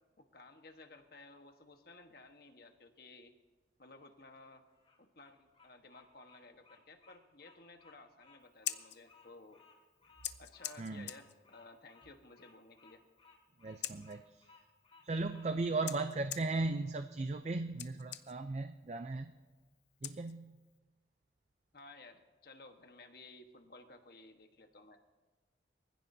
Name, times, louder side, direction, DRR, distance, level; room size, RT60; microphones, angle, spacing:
voice 1, 0.2-3.3 3.8-4.6 5.0-9.6 10.4-13.0 21.7-25.0, left 3 dB, 60° left, 5 dB, 1.3 m, -56 dB
Bird vocalization bird call bird song, 4.6-15.5, left 4 dB, 35° left, 3.7 m, -63 dB
Scissors, 8.4-20.8, left 12 dB, 75° left, 0.7 m, -49 dB
voice 2, 10.8-11.1 13.6-14.5 15.0-19.3 20.0-20.6, right 3 dB, 40° right, 8 dB, 0.4 m, -37 dB
24.0 x 15.5 x 2.7 m, 1.3 s
head